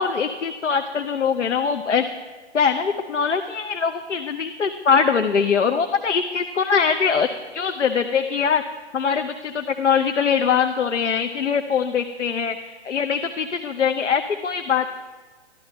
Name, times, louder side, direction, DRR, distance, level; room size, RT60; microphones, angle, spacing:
voice 1, 0.0-2.0 2.5-7.3 7.5-8.6 8.9-12.6 12.8-14.9, left 6 dB, 80° left, 7 dB, 0.7 m, -22 dB
12.0 x 12.0 x 5.2 m, 1.3 s
figure-of-eight pair, 125°, 35 cm